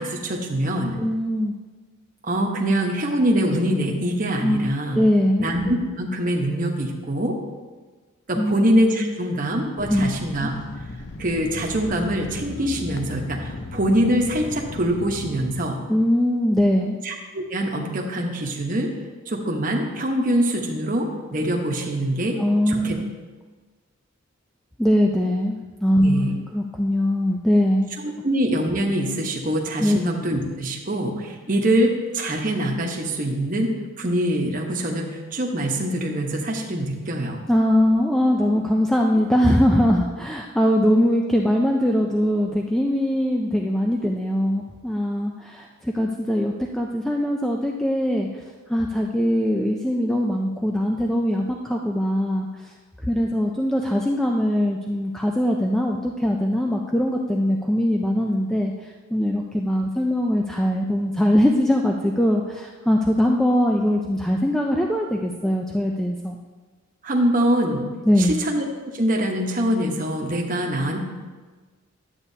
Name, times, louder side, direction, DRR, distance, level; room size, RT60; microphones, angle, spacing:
voice 1, 0.0-1.0 2.2-5.0 5.4-7.4 8.3-10.5 11.2-15.8 17.0-18.9 19.3-22.4 22.7-23.0 26.0-26.4 28.0-33.7 34.0-37.4 67.0-67.9 68.2-71.1, right 1 dB, 40° right, 1 dB, 1.0 m, -24 dB
voice 2, 1.0-1.5 4.4-4.7 4.9-5.5 8.4-8.6 9.0-9.1 9.9-10.1 15.9-17.0 22.4-23.1 24.8-27.9 29.8-30.0 37.5-52.7 53.0-66.4 68.1-68.3, equal, ahead, 0 dB, 0.3 m, -21 dB
sound 1, 9.8-15.7, left 2 dB, 50° left, 0.6 m, -36 dB
11.5 x 8.3 x 2.7 m, 1.3 s
head